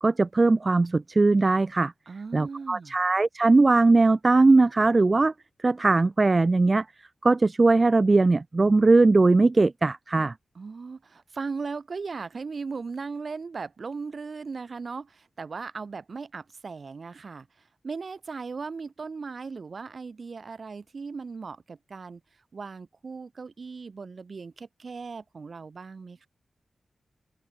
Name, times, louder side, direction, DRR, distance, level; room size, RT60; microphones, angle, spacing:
voice 1, 0.0-1.9 2.3-5.3 5.6-6.8 7.2-10.3, right 3 dB, 40° right, 0.4 m, -20 dB
voice 2, 2.1-2.9 10.5-22.2 22.5-26.3, right 4 dB, 60° right, 3.5 m, -37 dB
cardioid pair, 60°, 0 cm